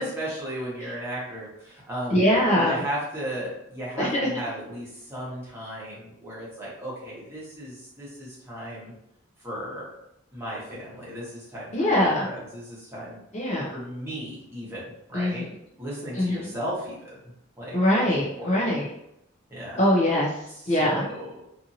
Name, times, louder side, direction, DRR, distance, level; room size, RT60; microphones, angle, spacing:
voice 1, 0.0-2.2 2.5-8.9 9.4-9.9 10.3-13.2 13.7-14.8 15.1-15.5 15.8-17.2 17.6-17.8 18.0-18.8 19.5-19.8 20.7-21.4, equal, 10° right, -8 dB, 1.1 m, -35 dB
voice 2, 2.1-2.8 4.0-4.3 11.7-12.3 13.3-13.7 15.1-15.5 16.1-16.5 17.7-18.9 19.8-20.3 20.7-21.1, left 1 dB, 35° left, -4 dB, 0.5 m, -22 dB
2.6 x 2.6 x 2.7 m, 0.81 s
head